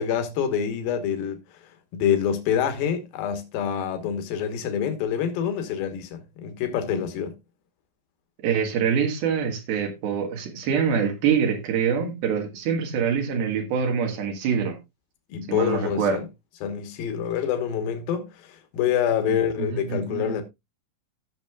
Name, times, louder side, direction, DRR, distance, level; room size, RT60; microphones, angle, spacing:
voice 1, 0.0-1.4 1.9-7.4 15.3-16.2 16.6-20.4, left 8 dB, 80° left, 3.1 m, -26 dB
voice 2, 8.4-14.8 15.5-16.2 19.3-20.3, right 7 dB, 85° right, 3.6 m, -25 dB
16.5 x 6.5 x 2.3 m
omnidirectional pair, 4.2 m